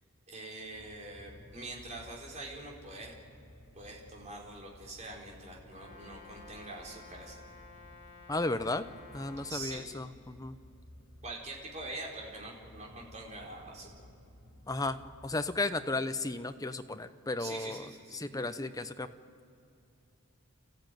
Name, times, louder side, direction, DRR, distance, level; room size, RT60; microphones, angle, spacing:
voice 1, 0.3-3.1 3.7-7.4 9.5-9.8 11.2-14.1 17.4-18.2, right 2 dB, 35° right, -3 dB, 4.4 m, -44 dB
sound 1, 0.6-15.9, left 1 dB, 55° left, 4.1 m, -56 dB
Brass instrument, 5.7-9.7, left 3 dB, 35° left, 5.7 m, -53 dB
voice 2, 8.3-8.8 9.1-10.6 14.7-17.8 18.1-19.1, left 2 dB, 15° left, 10 dB, 0.7 m, -34 dB
29.5 x 14.5 x 9.2 m, 2.6 s
head